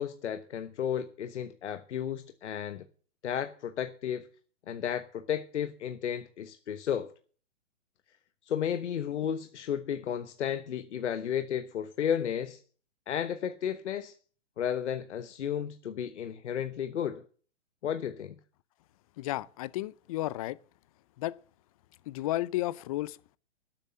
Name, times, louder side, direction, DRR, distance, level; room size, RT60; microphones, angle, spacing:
voice 1, 0.0-2.8 3.2-4.3 4.7-7.1 8.5-12.6 13.1-14.1 14.6-17.2 17.8-18.3, left 9 dB, 70° left, 1.2 m, -33 dB
voice 2, 19.2-20.6 21.2-21.4 22.1-23.4, left 16 dB, 30° left, 0.5 m, -33 dB
12.0 x 8.5 x 7.5 m
hypercardioid pair, 130°, 37 cm